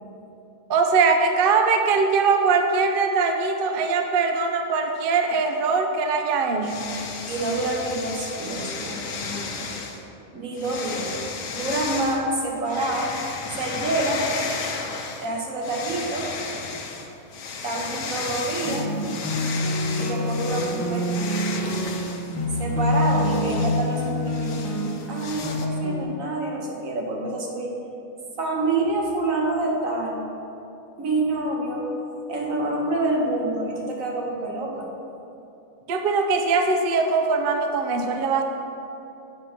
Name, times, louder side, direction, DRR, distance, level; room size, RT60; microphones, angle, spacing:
voice 1, 0.7-7.0 35.9-38.4, right 4 dB, 55° right, 4 dB, 0.6 m, -21 dB
sound 1, 6.6-10.0 10.6-12.2 12.7-15.3 15.6-25.7, left 4 dB, 75° left, 1.1 m, -34 dB
voice 2, 7.3-9.7 10.3-11.1 11.5-13.1 13.5-14.3 15.2-16.3 17.6-18.9 20.0-21.1 22.6-24.6 25.1-27.7 28.4-30.2 31.0-32.0 32.3-34.9, right 2 dB, 70° right, -1 dB, 1.6 m, -27 dB
sound 2, 18.6-26.0, left 1 dB, 15° left, 0.7 m, -26 dB
8.2 x 4.4 x 6.4 m, 2.9 s
omnidirectional pair, 1.5 m